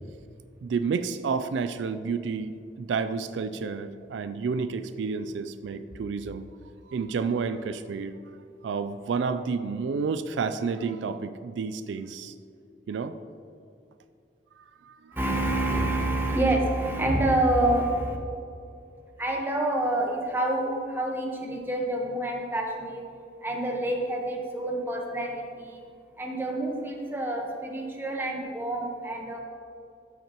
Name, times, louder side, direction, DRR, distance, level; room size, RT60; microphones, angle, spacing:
voice 1, 0.6-6.4 6.9-8.1 8.6-12.3 12.9-13.2 14.8-14.9, right 5 dB, 80° right, 11 dB, 0.3 m, -30 dB
voice 2, 15.1-18.2 19.2-23.0 23.4-25.8 26.2-29.4, right 1 dB, 10° right, 0 dB, 1.1 m, -27 dB
13.0 x 5.8 x 2.9 m, 2.5 s
head